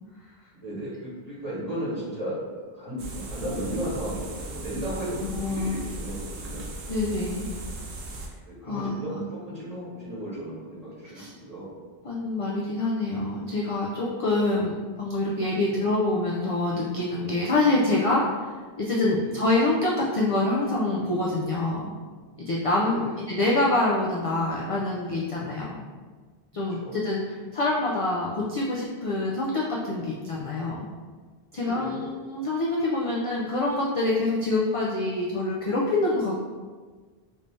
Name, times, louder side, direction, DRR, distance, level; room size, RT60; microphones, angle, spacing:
voice 1, 0.5-2.4 2.7-6.6 8.4-11.7 15.5-15.8 19.2-19.4 22.7-23.2 26.8-27.0 31.6-32.1, right 1 dB, 40° right, -9 dB, 1.4 m, -35 dB
sound 1, 3.0-8.3, right 2 dB, 75° right, 0.8 m, -37 dB
voice 2, 5.4-5.7 6.9-7.5 8.6-9.2 11.1-11.3 12.0-21.9 22.5-23.0 23.3-25.8 26.5-30.9 31.5-36.4, left 2 dB, 50° left, -4 dB, 0.4 m, -26 dB
3.2 x 2.6 x 3.2 m, 1.4 s
omnidirectional pair, 1.0 m